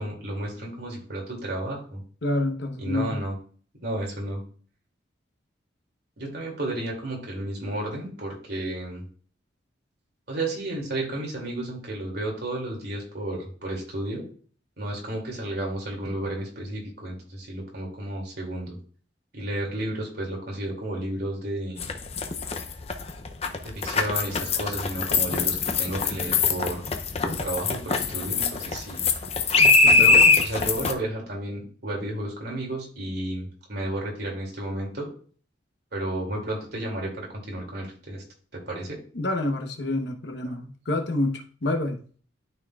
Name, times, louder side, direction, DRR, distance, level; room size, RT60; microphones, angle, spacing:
voice 1, 0.0-2.0 2.8-3.3 3.8-4.4 6.2-9.0 10.3-14.3 14.8-18.7 19.3-21.9 23.6-26.9 27.2-29.0 30.0-35.1 35.9-38.2 38.5-39.0, right 1 dB, 60° right, -2 dB, 2.7 m, -32 dB
voice 2, 2.2-3.2 29.6-30.1 39.1-42.0, left 2 dB, 65° left, 4 dB, 1.1 m, -28 dB
sound 1, 21.8-30.9, left 4 dB, 35° left, 0.6 m, -22 dB
12.0 x 4.4 x 2.4 m, 0.43 s
head